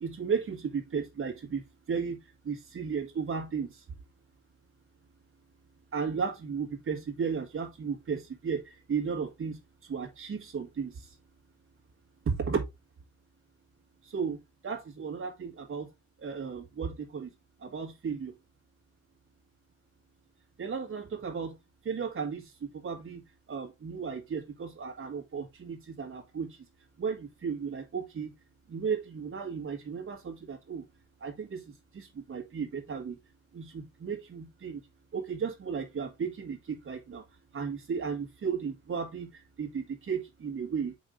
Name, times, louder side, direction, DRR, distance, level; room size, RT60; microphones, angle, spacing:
voice 1, 0.0-1.6 1.9-2.2 2.5-3.7 5.9-8.6 8.9-9.6 9.9-10.9 12.3-12.6 14.1-14.4 14.6-15.9 16.2-17.3 17.6-18.3 20.6-21.5 21.9-22.4 22.8-23.2 23.5-26.5 27.0-28.3 28.7-30.8 31.2-31.6 31.9-33.1 33.5-34.8 35.1-37.2 37.5-39.3 39.6-40.9, right 6 dB, 45° right, 1.8 m, -34 dB
6.1 x 5.4 x 3.7 m
cardioid pair, 90°, 30 cm